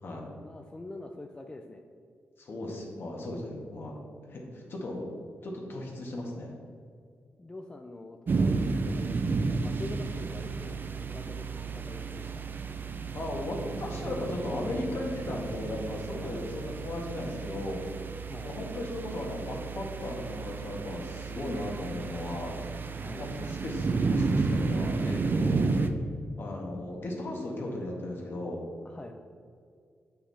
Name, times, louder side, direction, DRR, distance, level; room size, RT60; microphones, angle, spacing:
voice 1, 0.4-1.8 7.4-12.4 16.2-16.4 18.3-18.5 23.0-23.3 28.8-29.1, left 2 dB, 20° left, 4 dB, 0.5 m, -45 dB
voice 2, 2.4-4.0 4.3-5.2 5.4-6.5 13.1-17.8 18.4-22.6 23.2-25.7 26.4-28.6, left 1 dB, 60° left, -1 dB, 1.8 m, -36 dB
sound 1, 8.3-25.9, right 4 dB, 50° right, 0.6 m, -32 dB
8.1 x 5.7 x 4.2 m, 2.2 s
cardioid pair, 85°, 4 cm